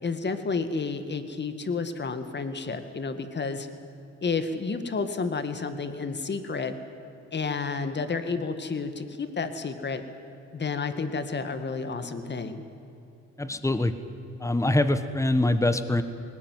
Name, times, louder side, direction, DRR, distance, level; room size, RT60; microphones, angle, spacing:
voice 1, 0.0-3.7 4.2-6.7 7.3-10.0 10.5-12.6, left 4 dB, 35° left, 9 dB, 2.0 m, -31 dB
voice 2, 13.4-13.9 14.4-16.0, left 1 dB, 10° left, 11 dB, 1.4 m, -24 dB
20.0 x 19.0 x 9.6 m, 2.8 s
cardioid pair, 90°, 30 cm